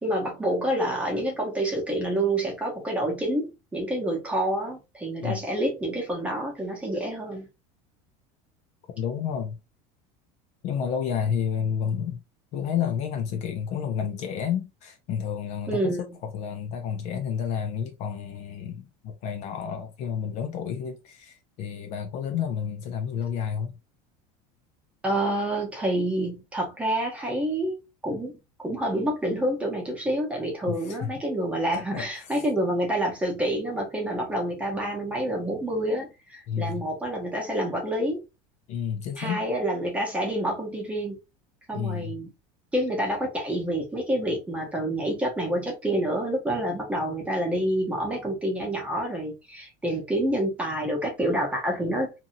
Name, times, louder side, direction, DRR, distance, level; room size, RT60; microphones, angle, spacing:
voice 1, 0.0-7.5 15.7-16.0 25.0-27.8 28.0-38.2 39.2-41.2 41.7-42.3 42.7-52.1, right 1 dB, 10° right, 0.8 m, -28 dB
voice 2, 8.9-9.6 10.6-12.2 12.5-23.8 30.6-31.1 31.7-32.1 36.5-36.8 38.7-39.4 41.7-42.2, left 8 dB, 45° left, 0.5 m, -30 dB
2.7 x 2.6 x 2.6 m
cardioid pair, 165°, 17 cm